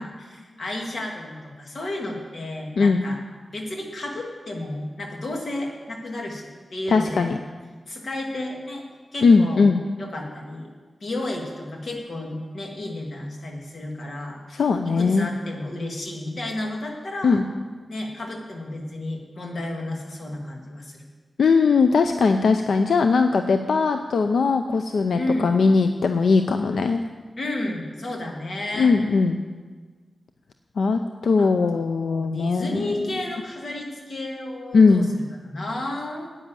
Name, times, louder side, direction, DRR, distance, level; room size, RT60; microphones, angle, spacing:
voice 1, 0.0-3.2 3.5-7.4 7.9-8.8 9.1-9.7 10.0-10.7 11.0-17.4 17.9-21.1 25.2-25.5 27.4-28.9 31.4-35.1 35.4-36.3, left 1 dB, 55° left, 1 dB, 2.2 m, -32 dB
voice 2, 6.9-7.4 9.2-9.8 14.5-15.3 17.2-17.4 21.4-27.0 28.8-29.4 30.8-33.2 34.7-35.1, left 4 dB, 90° left, 7 dB, 0.5 m, -19 dB
10.0 x 9.3 x 7.5 m, 1.4 s
wide cardioid pair, 100°, 0 cm